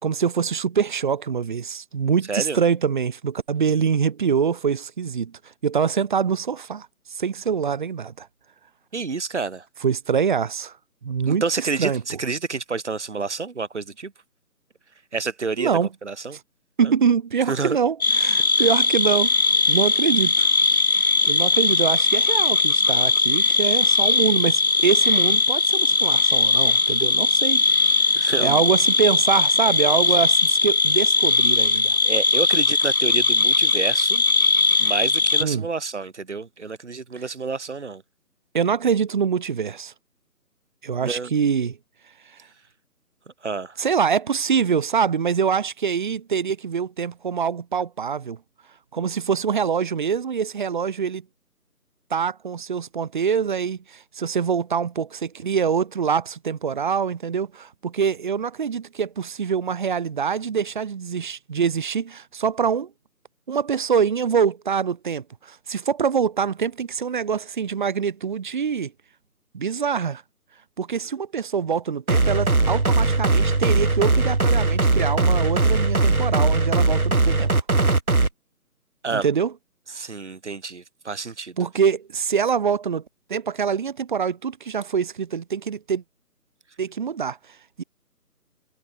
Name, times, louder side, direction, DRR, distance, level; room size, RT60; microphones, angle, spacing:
voice 1, 0.0-5.3 5.6-8.3 9.8-10.7 11.0-12.0 15.6-15.9 16.3-16.4 16.8-19.3 19.7-20.5 21.3-27.6 28.1-32.0 35.4-35.7 38.5-39.9 40.8-41.8 43.8-48.4 48.9-51.2 52.1-62.9 63.5-68.9 69.5-70.2 70.8-77.5 79.1-79.5 81.6-83.0 83.3-86.0 86.8-87.4 87.8-87.9, right 6 dB, 30° right, 4.5 m, -24 dB
voice 2, 2.3-2.6 8.9-9.7 11.3-14.1 15.1-15.7 16.0-16.4 16.8-16.9 17.5-17.8 28.2-28.6 32.0-34.2 34.8-38.0 41.0-41.3 43.4-43.8 79.0-79.3 80.0-81.6, right 4 dB, 45° right, 7.3 m, -29 dB
sound 1, 18.0-35.4, left 3 dB, 65° left, 2.9 m, -19 dB
sound 2, 72.1-78.3, right 3 dB, 65° right, 7.4 m, -19 dB
figure-of-eight pair, 160°, 46 cm